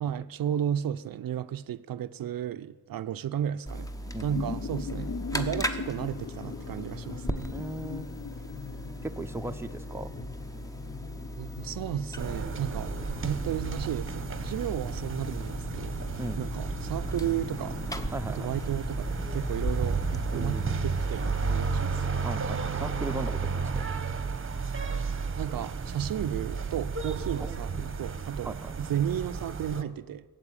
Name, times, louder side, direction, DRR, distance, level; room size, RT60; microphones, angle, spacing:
voice 1, 0.0-3.9 4.2-7.5 11.4-12.9 13.2-16.0 16.4-17.8 18.3-22.0 25.4-30.2, right 10 dB, 70° right, 0.5 m, -33 dB
sound 1, 3.7-21.9, equal, 10° left, 1.0 m, -37 dB
sound 2, 4.0-18.7, left 6 dB, 40° left, 0.5 m, -42 dB
voice 2, 7.5-8.1 9.0-10.1 16.2-16.4 18.1-18.5 20.3-20.8 22.2-23.8 27.4-27.9 28.4-28.7, right 2 dB, 5° right, 0.7 m, -37 dB
sound 3, 12.2-29.8, right 5 dB, 35° right, 1.0 m, -33 dB
16.0 x 7.6 x 9.8 m
cardioid pair, 95°, 36 cm